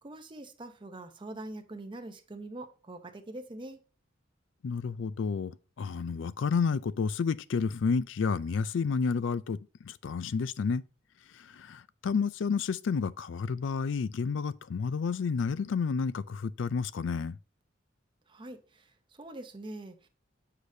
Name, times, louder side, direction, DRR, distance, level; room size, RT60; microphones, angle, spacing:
voice 1, 0.0-3.8 18.3-20.1, right 2 dB, 25° right, 0.7 m, -44 dB
voice 2, 4.6-5.5 5.8-10.8 11.3-17.4, left 5 dB, 70° left, 0.4 m, -30 dB
8.0 x 4.9 x 2.7 m
head